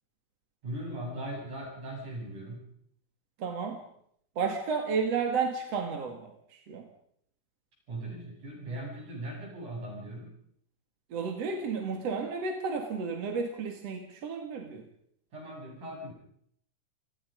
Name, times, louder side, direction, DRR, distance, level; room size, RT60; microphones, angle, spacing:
voice 1, 0.6-2.6 7.9-10.3 15.3-16.1, right 1 dB, 75° right, -1 dB, 9.7 m, -39 dB
voice 2, 3.4-3.8 4.4-6.9 11.1-14.8, right 5 dB, 55° right, 4 dB, 3.1 m, -32 dB
29.0 x 18.5 x 5.3 m, 0.68 s
omnidirectional pair, 3.6 m